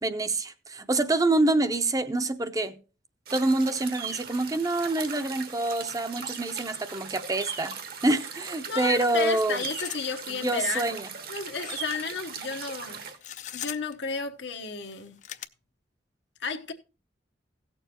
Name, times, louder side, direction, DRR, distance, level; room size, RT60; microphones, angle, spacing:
voice 1, 0.0-2.8 3.3-9.7 10.3-11.1, right 2 dB, 20° right, 0.6 m, -26 dB
sound 1, 3.3-13.2, right 6 dB, 60° right, 1.3 m, -39 dB
sound 2, 8.3-8.4 8.7-8.8 9.4-10.0 10.4-10.5 11.4-12.0 13.1-14.0 14.8-15.5, left 11 dB, 45° left, 0.5 m, -39 dB
voice 2, 8.7-11.0 11.3-13.0 13.5-15.2 16.4-16.7, left 5 dB, 85° left, 1.1 m, -32 dB
17.0 x 6.9 x 2.9 m
head